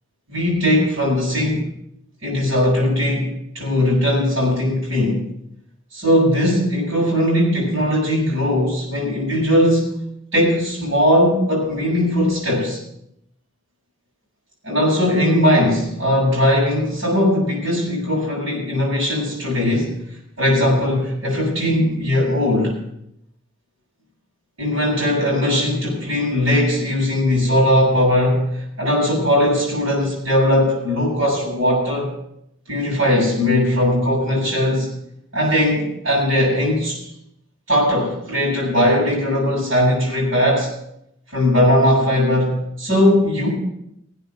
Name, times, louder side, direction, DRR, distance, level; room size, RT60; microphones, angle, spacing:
voice 1, 0.3-1.7 2.2-5.2 5.9-9.9 10.3-12.8 14.6-19.9 20.4-22.7 24.6-32.1 32.7-34.9 35.3-37.0 37.7-40.7 41.3-43.5, left 1 dB, 70° right, -8 dB, 7.5 m, -19 dB
19.5 x 8.8 x 5.9 m, 0.78 s
head